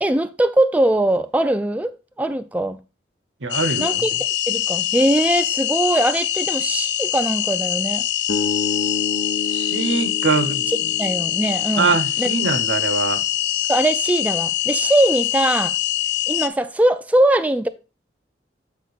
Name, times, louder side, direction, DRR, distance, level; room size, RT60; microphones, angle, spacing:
voice 1, 0.0-2.8 3.8-8.0 11.0-11.9 12.2-12.3 13.7-15.7 16.3-17.7, right 1 dB, 10° right, 0.3 m, -21 dB
voice 2, 3.4-4.0 9.5-10.9 11.8-13.2, right 4 dB, 80° right, 0.8 m, -23 dB
sound 1, 3.5-16.5, left 13 dB, 65° left, 0.6 m, -24 dB
sound 2, 8.3-12.4, left 4 dB, 85° left, 1.0 m, -29 dB
8.5 x 4.5 x 4.0 m
head